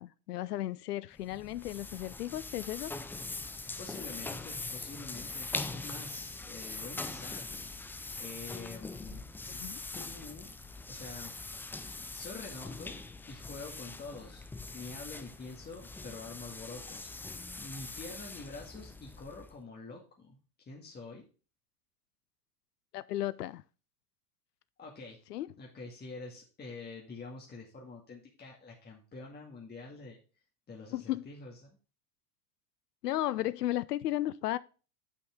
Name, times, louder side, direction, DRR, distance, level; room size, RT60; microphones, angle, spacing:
voice 1, 0.0-2.9 9.5-9.8 22.9-23.6 25.3-25.5 30.9-31.3 33.0-34.6, left 14 dB, 80° left, 0.5 m, -34 dB
sound 1, 1.1-19.6, left 3 dB, 5° left, 0.4 m, -42 dB
voice 2, 3.8-7.5 8.2-9.6 9.9-10.5 10.9-11.3 12.1-14.4 14.7-17.1 17.6-20.4 20.7-21.2 24.8-25.2 25.6-30.2 30.7-31.5, left 3 dB, 20° left, 2.1 m, -46 dB
9.3 x 5.4 x 3.6 m
figure-of-eight pair, 85°, 47 cm